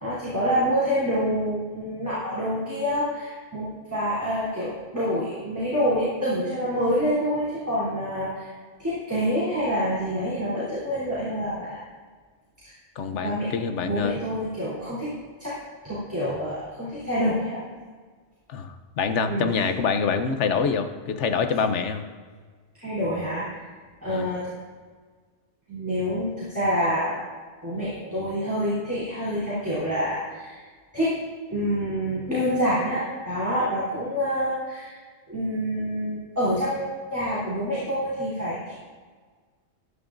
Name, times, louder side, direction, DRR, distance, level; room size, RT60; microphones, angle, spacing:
voice 1, 0.0-8.5 8.8-11.8 12.6-12.7 13.2-13.5 13.8-15.1 15.4-15.6 15.8-17.6 19.3-19.5 22.7-23.6 24.0-24.5 25.7-27.1 27.6-30.6 30.9-31.1 31.5-34.9 35.3-38.7, equal, 15° right, -10 dB, 3.4 m, -27 dB
voice 2, 13.0-14.2 18.5-22.0 24.1-24.3, left 5 dB, 90° left, 7 dB, 1.2 m, -26 dB
16.0 x 11.0 x 2.6 m, 1.5 s
omnidirectional pair, 1.2 m